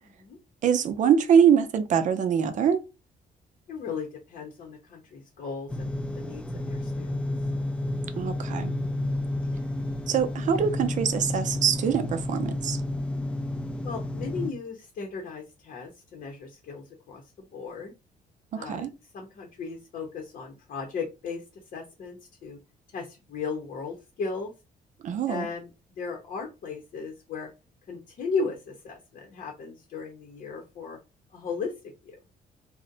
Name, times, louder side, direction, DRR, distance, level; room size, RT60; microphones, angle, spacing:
voice 1, 0.6-2.8 8.2-8.7 10.1-12.8 18.5-18.9 25.0-25.5, right 7 dB, 50° right, 0.5 m, -23 dB
voice 2, 3.7-7.3 13.8-17.2 17.5-17.9 18.5-21.4 21.7-22.6 22.9-24.5 25.3-25.7 26.0-27.5 27.9-31.0 31.3-31.7 32.0-32.2, left 4 dB, 55° left, 0.7 m, -36 dB
sound 1, 5.7-14.5, left 1 dB, 5° left, 0.3 m, -31 dB
2.5 x 2.1 x 3.8 m
cardioid pair, 140°, 16 cm